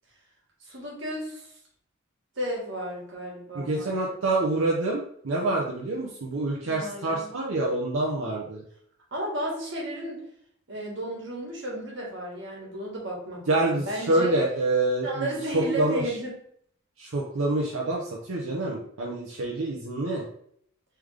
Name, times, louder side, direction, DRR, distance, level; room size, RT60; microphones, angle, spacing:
voice 1, 0.7-1.5 2.4-3.9 6.6-7.3 9.1-10.2 10.7-14.4 15.0-16.3, right 1 dB, 60° right, -3 dB, 1.5 m, -33 dB
voice 2, 3.5-8.6 13.5-16.0 17.0-20.2, right 2 dB, 90° right, -3 dB, 0.7 m, -27 dB
3.6 x 3.4 x 3.3 m, 0.65 s
head